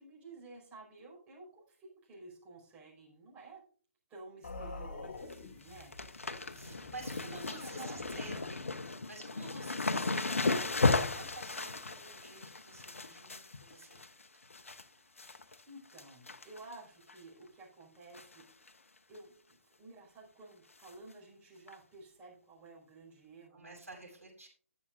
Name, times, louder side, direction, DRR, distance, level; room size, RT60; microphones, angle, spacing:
voice 1, 0.0-3.6 4.1-5.9 6.6-8.8 15.0-18.4 19.1-23.8, right 3 dB, 15° right, -4 dB, 5.3 m, -53 dB
sound 1, 4.4-8.5, left 3 dB, 45° left, 1.8 m, -48 dB
sound 2, 5.0-5.3 5.6-14.8 15.2-15.6 15.9-16.7 17.1-17.2 18.1-18.4 18.7-18.8 19.1-19.2 20.8-20.9 21.7-21.8, left 3 dB, 65° left, 0.9 m, -35 dB
voice 2, 6.5-14.2 23.5-24.5, right 2 dB, 80° right, -1 dB, 6.5 m, -51 dB
20.0 x 7.4 x 2.5 m, 0.43 s
figure-of-eight pair, 130°, 8 cm